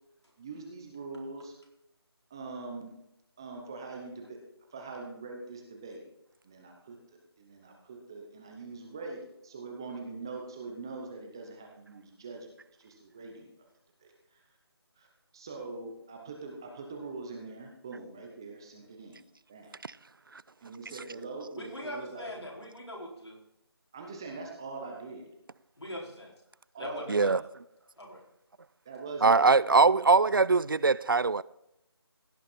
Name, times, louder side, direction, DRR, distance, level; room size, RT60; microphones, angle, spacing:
voice 1, 0.4-1.5 2.3-2.9 3.4-4.4 4.7-6.0 6.4-7.0 7.4-9.2 9.4-12.5 12.8-13.7 14.0-14.4 15.0-15.1 15.3-19.2 19.5-19.8 20.6-22.4 23.9-25.3 26.7-27.1 28.8-29.5, right 3 dB, 10° right, 0.7 m, -43 dB
voice 2, 21.6-23.4 25.8-26.3 26.8-27.3 28.0-28.2, left 1 dB, 90° left, 4.6 m, -41 dB
voice 3, 27.1-27.4 29.2-31.4, right 4 dB, 55° right, 0.4 m, -22 dB
16.5 x 6.2 x 4.3 m
figure-of-eight pair, 170°, 14 cm